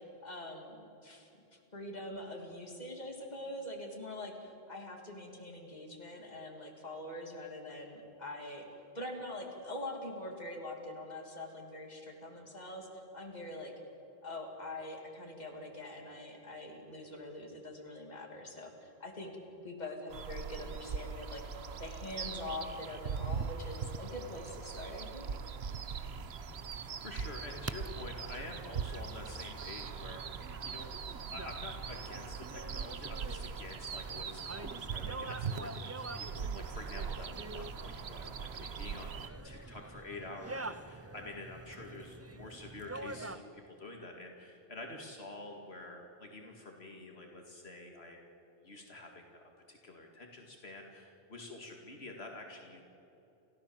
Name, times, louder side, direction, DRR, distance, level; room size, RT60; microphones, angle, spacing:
voice 1, 0.2-8.6 8.9-13.7 14.2-19.4 19.6-21.4 21.8-25.3, left 1 dB, 40° left, 1 dB, 3.0 m, -44 dB
sound 1, 20.1-39.3, right 6 dB, 75° right, 1.2 m, -41 dB
sound 2, 25.7-43.4, right 2 dB, 15° right, 0.6 m, -47 dB
voice 2, 26.8-31.0 31.3-48.2 48.6-52.8, left 2 dB, 75° left, 2 dB, 2.4 m, -48 dB
29.5 x 15.0 x 7.4 m, 2.9 s
omnidirectional pair, 1.1 m